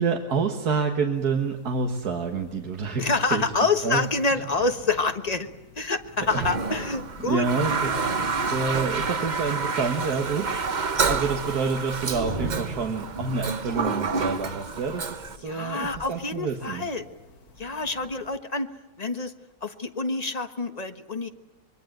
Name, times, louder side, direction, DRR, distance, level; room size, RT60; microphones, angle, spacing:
voice 1, 0.0-4.0 4.3-4.4 6.3-6.4 7.2-16.9, right 5 dB, 90° right, 4 dB, 2.1 m, -28 dB
sound 1, 1.1-18.4, left 4 dB, 75° left, 2.0 m, -48 dB
voice 2, 3.0-5.5 5.8-7.5 15.4-17.1 17.6-18.7 19.0-19.3 19.6-21.3, left 3 dB, 25° left, 8 dB, 1.4 m, -27 dB
Toilet flush, 6.2-15.4, right 4 dB, 35° right, 0.9 m, -29 dB
25.5 x 22.0 x 9.1 m, 1.0 s
omnidirectional pair, 1.6 m